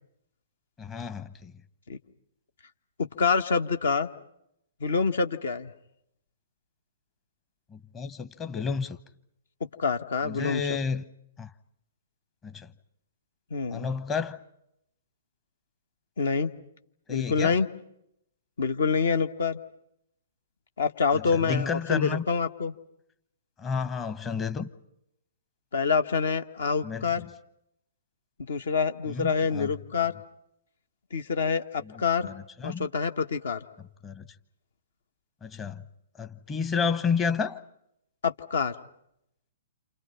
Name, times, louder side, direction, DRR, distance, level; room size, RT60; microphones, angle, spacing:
voice 1, 0.8-1.5 7.7-9.0 10.2-11.0 11.4-11.5 12.4-12.7 13.7-14.4 17.1-17.6 21.1-22.2 23.6-24.7 26.8-27.3 29.1-29.7 31.8-32.9 34.0-34.3 35.4-35.8 36.2-37.6, left 5 dB, 20° left, 1.0 m, -31 dB
voice 2, 3.0-4.1 4.8-5.7 9.8-10.8 13.5-13.9 16.2-16.5 17.1-17.7 18.6-19.6 20.8-22.7 25.7-27.2 28.5-30.1 31.1-32.3 32.6-33.6 38.2-38.7, left 5 dB, 60° left, 1.3 m, -26 dB
28.5 x 28.0 x 5.7 m
figure-of-eight pair, 120°, 0 cm